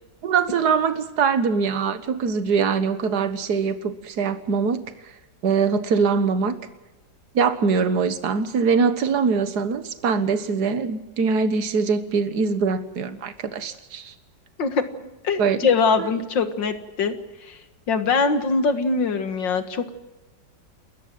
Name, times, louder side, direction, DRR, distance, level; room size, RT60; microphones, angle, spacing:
voice 1, 0.2-4.8 5.4-6.6 7.3-14.1 15.4-15.6, right 5 dB, 60° right, 10 dB, 1.9 m, -22 dB
voice 2, 15.2-17.1 17.4-17.6 17.9-19.9, left 4 dB, 80° left, 9 dB, 2.4 m, -22 dB
29.5 x 14.0 x 7.6 m, 1.1 s
omnidirectional pair, 2.0 m